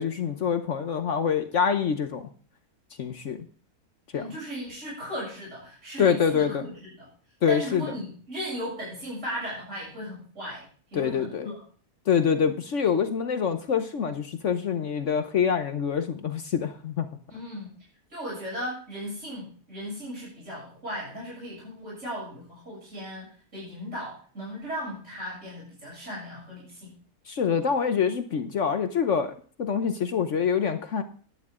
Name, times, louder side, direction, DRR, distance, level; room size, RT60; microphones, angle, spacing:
voice 1, 0.0-2.3 3.0-3.5 4.1-4.3 6.0-6.6 7.4-7.8 10.9-11.5 12.1-17.1 27.3-31.0, left 7 dB, 55° left, 9 dB, 1.0 m, -25 dB
voice 2, 4.1-7.1 7.5-10.7 10.9-11.6 17.3-17.7 18.1-27.0, equal, 45° right, -6 dB, 7.8 m, -37 dB
11.5 x 11.0 x 3.6 m, 0.42 s
omnidirectional pair, 1.7 m